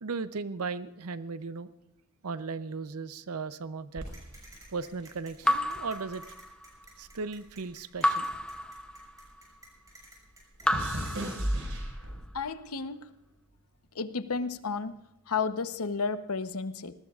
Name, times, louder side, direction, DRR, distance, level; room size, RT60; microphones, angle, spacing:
voice 1, 0.0-1.7 2.2-4.1 4.7-6.2 7.0-8.3, right 4 dB, 85° right, 0.6 m, -36 dB
sound 1, 3.9-6.5 6.7-9.4 9.7-12.5 13.2-13.6, right 1 dB, 65° right, 5.0 m, -37 dB
sound 2, 4.1-11.3, right 2 dB, 15° right, 6.9 m, -54 dB
Raindrop / Drip, 5.4-6.8 8.0-9.4 10.6-12.0, left 1 dB, 5° left, 0.6 m, -31 dB
voice 2, 12.3-13.2 13.9-16.9, left 5 dB, 75° left, 0.9 m, -32 dB
21.0 x 20.0 x 2.4 m
head